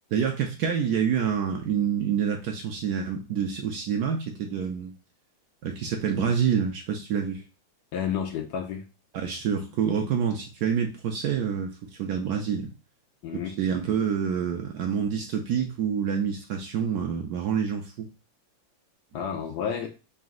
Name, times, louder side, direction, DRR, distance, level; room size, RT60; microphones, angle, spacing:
voice 1, 0.1-4.9 5.6-7.4 9.1-12.7 13.3-18.1, right 7 dB, 70° right, 3 dB, 0.9 m, -27 dB
voice 2, 7.9-8.8 13.2-13.5 19.1-19.9, left 8 dB, 70° left, 3 dB, 1.0 m, -30 dB
4.0 x 2.5 x 3.6 m, 0.31 s
omnidirectional pair, 2.1 m